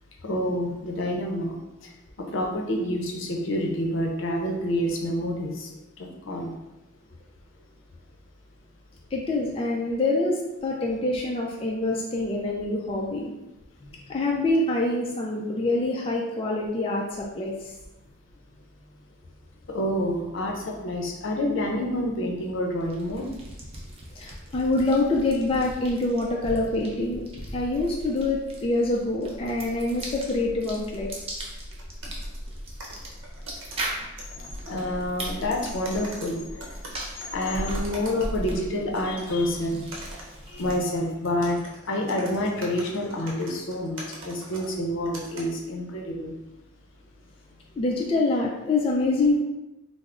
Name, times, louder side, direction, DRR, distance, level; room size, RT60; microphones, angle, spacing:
voice 1, 0.2-1.6 1.8-6.5 13.8-13.9 19.7-23.3 33.9-34.0 34.3-36.7 37.3-39.9 40.5-41.6 41.9-46.4, left 1 dB, 70° left, 1 dB, 0.6 m, -28 dB
voice 2, 9.1-13.3 14.1-17.7 24.2-27.2 27.5-31.1 47.8-49.4, left 2 dB, 30° left, -2 dB, 0.3 m, -25 dB
sound 1, 22.8-41.0, right 1 dB, 30° right, 0.6 m, -38 dB
sound 2, 31.4-31.5 31.8-34.8 35.5-38.6 38.9-45.4, right 1 dB, 70° right, 0.8 m, -43 dB
3.4 x 2.0 x 3.6 m, 0.99 s
head